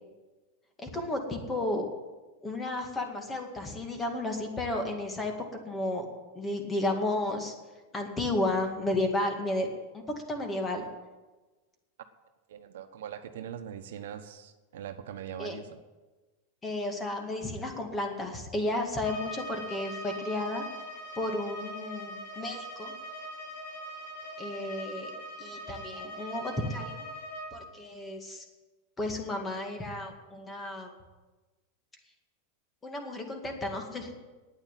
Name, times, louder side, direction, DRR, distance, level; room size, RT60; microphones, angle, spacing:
voice 1, 0.8-1.9 2.4-5.3 5.7-6.0 6.3-7.5 7.9-9.7 9.9-10.0 10.3-10.8 15.4-15.6 16.6-20.6 21.2-22.9 24.4-25.1 25.4-27.0 27.5-28.5 29.0-30.9 32.8-34.1, left 1 dB, 15° left, 4 dB, 2.1 m, -32 dB
voice 2, 12.5-15.7, right 9 dB, 80° right, 8 dB, 1.1 m, -41 dB
Bowed string instrument, 19.0-27.6, equal, 75° left, 4.2 m, -41 dB
9.5 x 9.0 x 9.3 m, 1.2 s
supercardioid pair, 135°, 0 cm